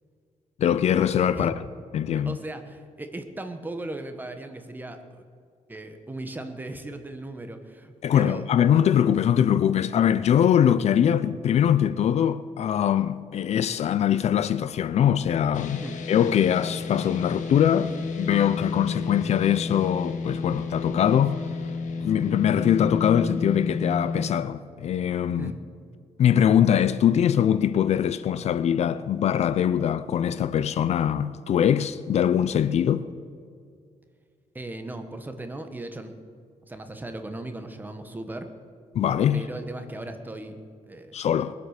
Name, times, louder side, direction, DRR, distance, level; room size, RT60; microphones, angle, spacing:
voice 1, 0.6-1.5 1.9-2.4 8.0-21.4 22.0-25.5 26.2-33.1 38.9-39.4 41.1-41.5, left 9 dB, 60° left, 0.5 m, -22 dB
voice 2, 2.1-5.2 5.7-8.5 15.8-16.0 25.4-25.6 34.5-36.1 36.7-38.5 39.3-41.2, right 2 dB, 15° right, 1.3 m, -37 dB
sound 1, 15.5-24.3, left 4 dB, 75° left, 1.5 m, -31 dB
21.5 x 8.3 x 6.6 m
cardioid pair, 130°, 13 cm